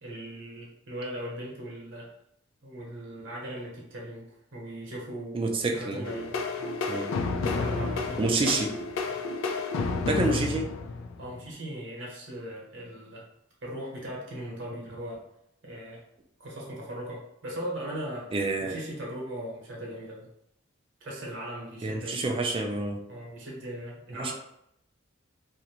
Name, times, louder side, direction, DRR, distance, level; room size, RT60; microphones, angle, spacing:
voice 1, 0.0-2.1 2.6-5.4 5.7-6.8 7.4-8.5 9.1-9.2 10.3-10.4 11.2-13.3 13.6-15.3 15.6-16.0 16.4-18.3 18.6-20.3 21.0-22.2 23.1-24.3, right 1 dB, 65° right, -3 dB, 0.9 m, -39 dB
voice 2, 5.3-6.0 6.9-7.1 8.2-8.7 10.1-10.7 18.3-18.8 21.8-23.0 24.2-24.3, right 2 dB, 25° right, 2 dB, 0.3 m, -28 dB
sound 1, 6.0-11.5, left 4 dB, 70° left, 0.3 m, -31 dB
2.5 x 2.1 x 2.9 m, 0.77 s
head